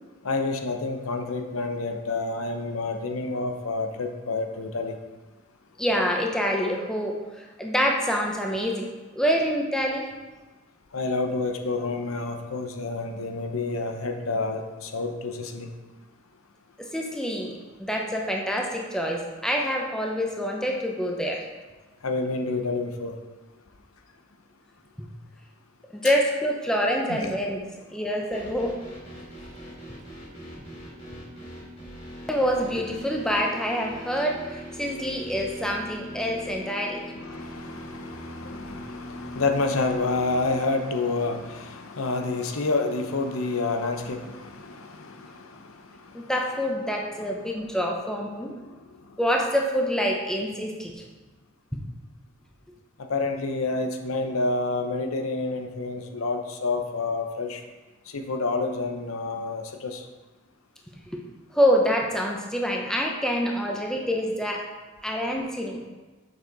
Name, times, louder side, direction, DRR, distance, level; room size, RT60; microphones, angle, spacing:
voice 1, 0.2-4.9 10.9-15.7 22.0-23.1 26.0-26.1 27.1-27.4 37.2-45.7 53.1-57.6 58.1-60.0, left 3 dB, 85° left, 5 dB, 0.8 m, -29 dB
voice 2, 5.8-8.9 9.1-10.1 16.9-21.4 25.0-25.1 25.9-27.6 27.9-28.8 32.3-37.0 46.1-48.5 49.2-51.0 61.5-64.6 65.0-65.8, equal, 5° left, 0 dB, 0.8 m, -26 dB
sound 1, 28.3-40.6, equal, 35° left, 2.7 m, -41 dB
6.7 x 6.6 x 4.0 m, 1.3 s
head